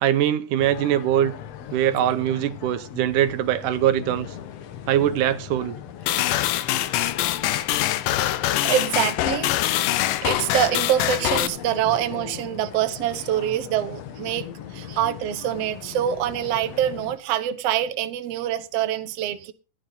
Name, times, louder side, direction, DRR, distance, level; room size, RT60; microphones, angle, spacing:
voice 1, 0.0-1.3 1.7-4.3 4.9-5.8 9.9-10.1, right 11 dB, 80° right, 2.4 m, -22 dB
sound 1, 0.6-17.2, left 9 dB, 65° left, 1.8 m, -38 dB
sound 2, 6.1-11.5, left 14 dB, 90° left, 2.4 m, -24 dB
voice 2, 8.6-9.5 10.2-19.5, right 11 dB, 65° right, 1.8 m, -25 dB
15.5 x 10.0 x 4.0 m
omnidirectional pair, 3.7 m